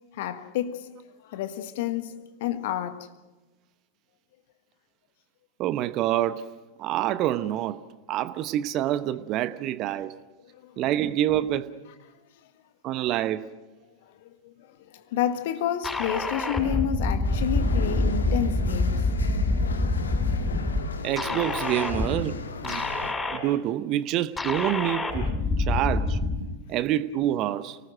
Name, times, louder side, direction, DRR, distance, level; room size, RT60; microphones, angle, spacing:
voice 1, 0.1-0.9 1.2-3.1 10.5-10.7 14.2-19.1, left 11 dB, 50° left, 1.5 m, -30 dB
voice 2, 5.6-6.5 6.8-7.8 8.1-10.1 10.8-11.7 12.8-13.5 21.0-22.4 22.6-22.8 23.3-26.2 26.7-27.8, right 12 dB, 35° right, 0.9 m, -27 dB
sound 1, 15.8-20.8 21.2-22.2 22.6-23.4 24.4-26.4, left 2 dB, 10° left, 6.3 m, -26 dB
sound 2, 17.2-23.1, left 5 dB, 70° left, 1.7 m, -37 dB
29.5 x 19.0 x 6.3 m
figure-of-eight pair, 90°, 0 cm